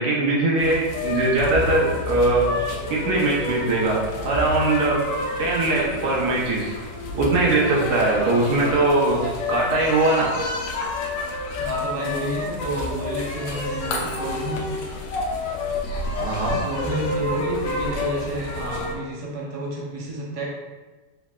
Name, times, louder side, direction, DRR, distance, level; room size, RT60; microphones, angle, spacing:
voice 1, 0.0-2.5 2.9-5.0 5.4-6.7 7.1-9.2 9.5-10.3 16.2-16.6, right 2 dB, 65° right, -4 dB, 1.4 m, -21 dB
sound 1, 0.6-18.9, left 2 dB, 80° left, 1.3 m, -29 dB
voice 2, 8.2-8.7 11.6-15.0 16.5-20.5, right 1 dB, 45° right, -4 dB, 0.4 m, -30 dB
4.4 x 4.0 x 2.4 m, 1.3 s
omnidirectional pair, 1.9 m